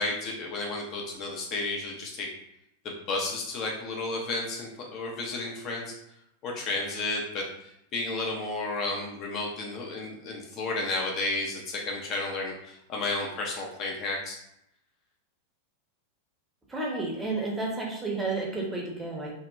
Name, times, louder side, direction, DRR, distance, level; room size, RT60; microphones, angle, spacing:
voice 1, 0.0-2.3 2.8-5.9 6.4-14.4, left 2 dB, 35° left, -1 dB, 0.5 m, -32 dB
voice 2, 16.7-19.3, right 3 dB, 10° right, -3 dB, 0.6 m, -31 dB
2.8 x 2.1 x 2.3 m, 0.80 s
figure-of-eight pair, 90°, 0 cm